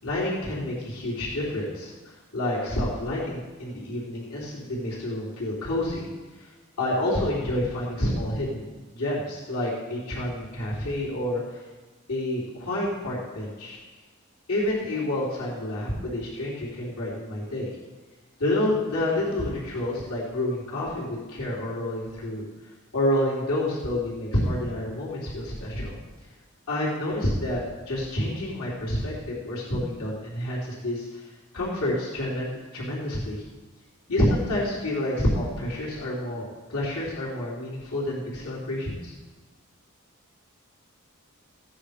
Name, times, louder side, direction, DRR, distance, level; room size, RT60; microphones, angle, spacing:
voice 1, 0.0-6.1 6.4-6.5 6.8-11.6 12.1-13.8 14.5-17.7 18.4-22.4 22.9-26.0 26.7-27.6 27.9-31.2 31.5-33.4 34.1-39.1, left 1 dB, 85° left, -6 dB, 3.9 m, -28 dB
16.0 x 9.4 x 5.2 m, 1.3 s
head